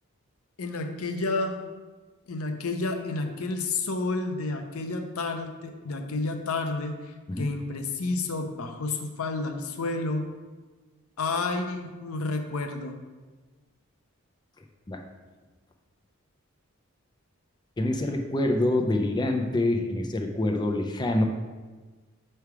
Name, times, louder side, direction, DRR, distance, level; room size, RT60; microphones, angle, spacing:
voice 1, 0.6-1.6 2.3-10.3 11.2-13.0, left 3 dB, 85° left, 6 dB, 0.6 m, -30 dB
voice 2, 17.8-21.2, left 1 dB, 20° left, 3 dB, 0.4 m, -26 dB
6.8 x 3.3 x 4.7 m, 1.3 s
head